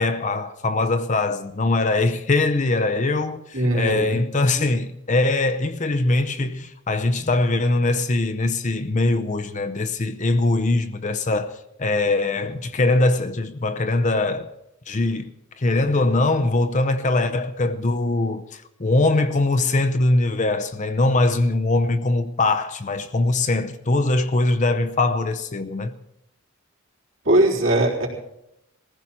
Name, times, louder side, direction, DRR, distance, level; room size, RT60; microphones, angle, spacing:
voice 1, 0.0-14.5 14.9-15.3 15.6-25.9, left 2 dB, 35° left, 0.7 m, -22 dB
voice 2, 3.5-4.2 27.2-28.1, right 1 dB, 65° right, 3.8 m, -20 dB
20.5 x 15.0 x 4.4 m
head